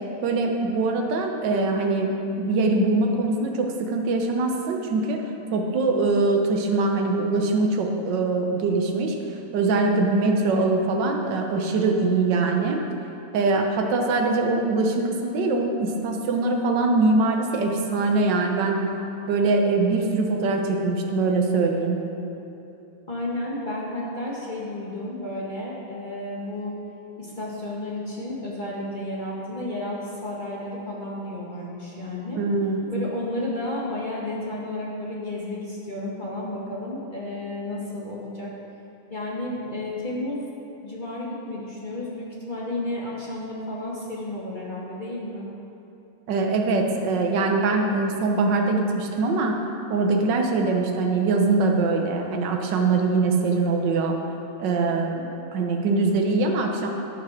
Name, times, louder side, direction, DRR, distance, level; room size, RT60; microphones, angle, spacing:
voice 1, 0.2-5.2 5.5-9.1 9.5-12.8 13.3-18.8 19.3-22.0 32.3-32.9 46.3-49.6 49.9-54.2 54.6-56.9, right 3 dB, 65° right, 2 dB, 1.1 m, -23 dB
voice 2, 23.1-26.8 27.2-32.4 32.9-38.5 39.1-40.5 40.8-45.5, left 1 dB, 25° left, -5 dB, 1.1 m, -32 dB
13.0 x 7.5 x 5.9 m, 3.0 s
omnidirectional pair, 3.4 m